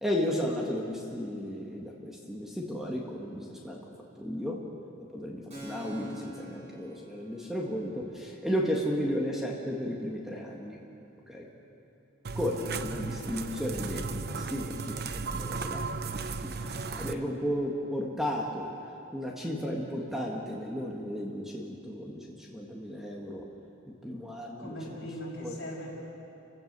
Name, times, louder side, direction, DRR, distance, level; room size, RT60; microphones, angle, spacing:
voice 1, 0.0-3.8 4.2-4.6 5.1-10.8 11.3-11.5 12.4-15.8 16.1-18.7 19.1-22.2 22.5-23.4 24.0-24.8 25.4-25.5, equal, ahead, -2 dB, 1.8 m, -34 dB
Keyboard (musical), 5.5-12.8, equal, 35° right, 7.4 m, -50 dB
voice 2, 6.4-6.7 24.6-25.9, equal, 55° left, -4 dB, 6.6 m, -40 dB
sound 1, 12.2-17.1, right 4 dB, 50° right, 0.8 m, -35 dB
29.5 x 16.5 x 6.8 m, 2.7 s
head